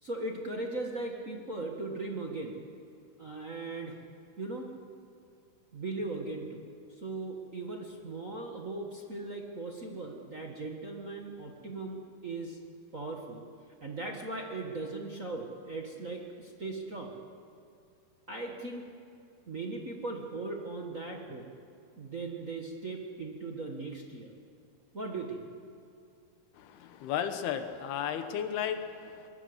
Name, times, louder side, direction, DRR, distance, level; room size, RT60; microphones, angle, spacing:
voice 1, 0.0-2.5 3.2-4.0 4.4-4.7 5.7-6.6 7.0-12.6 12.9-13.4 13.8-17.1 18.3-18.9 19.5-21.5 22.0-24.3 24.9-25.4, right 2 dB, 60° right, 0 dB, 0.8 m, -38 dB
voice 2, 26.5-29.3, left 9 dB, 85° left, 8 dB, 3.2 m, -34 dB
22.0 x 22.0 x 8.0 m, 2.5 s
omnidirectional pair, 4.4 m